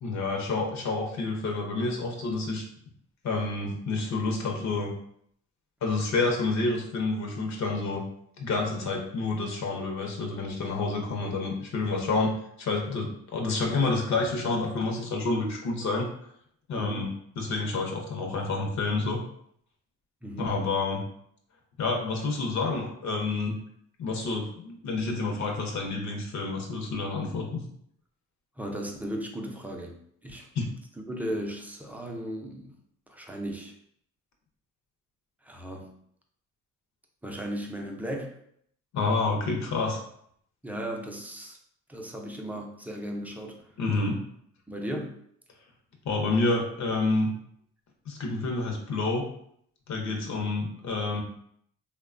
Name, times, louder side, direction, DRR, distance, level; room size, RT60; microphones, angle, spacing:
voice 1, 0.0-2.6 3.2-4.9 5.8-8.0 8.4-12.3 12.6-16.1 16.7-17.1 17.4-19.2 20.4-21.0 21.8-23.5 24.0-27.6 30.5-30.7 38.9-40.0 43.8-44.2 46.0-47.3 48.1-49.3 49.9-51.2, left 3 dB, 65° left, 1 dB, 0.7 m, -28 dB
voice 2, 16.7-17.1 20.2-20.6 28.6-30.4 31.1-32.7 33.1-33.7 35.4-35.9 37.2-38.3 40.6-41.6 41.9-43.6 44.7-45.2, equal, 5° right, 1 dB, 0.4 m, -36 dB
3.0 x 2.2 x 2.4 m, 0.68 s
cardioid pair, 90°, 30 cm